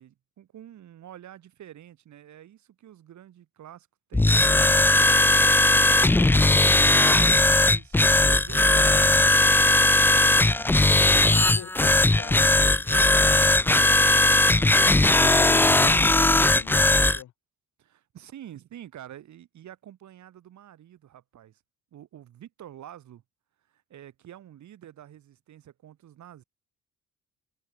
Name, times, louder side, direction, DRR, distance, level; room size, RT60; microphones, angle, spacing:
voice 1, 0.0-6.6 6.9-9.8 10.1-10.5 17.8-21.6 21.9-23.2 23.7-26.4, right 11 dB, 70° right, 4.4 m, -48 dB
sound 1, 4.1-17.2, left 2 dB, 5° left, 0.4 m, -19 dB
voice 2, 10.5-11.1 11.4-14.7 15.2-17.3, left 12 dB, 75° left, 4.9 m, -44 dB
cardioid pair, 90°, 30 cm